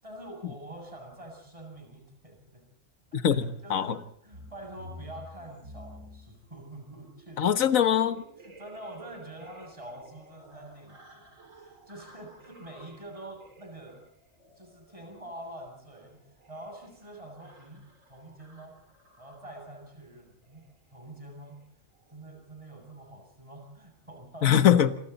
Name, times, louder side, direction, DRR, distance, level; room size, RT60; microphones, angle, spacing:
voice 1, 0.0-2.6 3.2-7.6 8.4-14.0 14.6-16.2 16.5-21.6 22.1-24.5, right 1 dB, 25° right, 2 dB, 7.4 m, -46 dB
voice 2, 3.1-4.0 7.4-8.2 24.4-25.0, left 9 dB, 90° left, 11 dB, 1.6 m, -23 dB
sound 1, 4.3-19.7 20.4-20.7 20.9-21.2 21.5-21.6 21.9-22.1, equal, 75° right, 4.4 m, -52 dB
28.0 x 25.0 x 4.2 m, 0.68 s
omnidirectional pair, 1.4 m